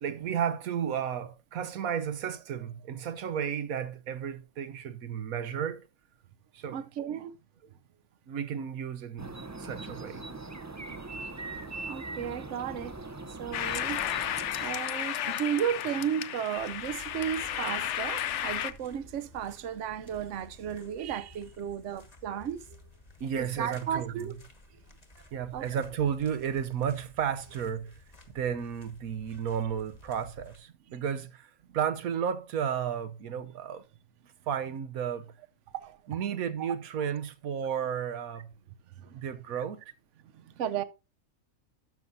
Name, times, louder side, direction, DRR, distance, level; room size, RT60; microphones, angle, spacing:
voice 1, 0.0-5.9 6.5-6.8 8.3-9.3 9.6-10.3 23.2-24.3 25.3-27.9 28.3-33.8 34.5-35.3 36.1-38.5 39.1-39.8, right 8 dB, 80° right, 1.3 m, -33 dB
voice 2, 6.7-7.4 11.9-13.0 13.4-14.0 14.6-22.8 23.4-24.4 25.5-25.7 31.7-31.8 35.7-36.0 36.6-36.7 39.0-39.2 39.6-39.7 40.3-40.8, right 9 dB, 65° right, 1.0 m, -34 dB
sound 1, 9.2-14.7, right 3 dB, 20° right, 0.4 m, -41 dB
sound 2, 13.5-18.7, left 11 dB, 65° left, 0.8 m, -33 dB
sound 3, 16.5-30.6, left 2 dB, 30° left, 1.4 m, -54 dB
12.0 x 7.2 x 2.7 m
omnidirectional pair, 1.5 m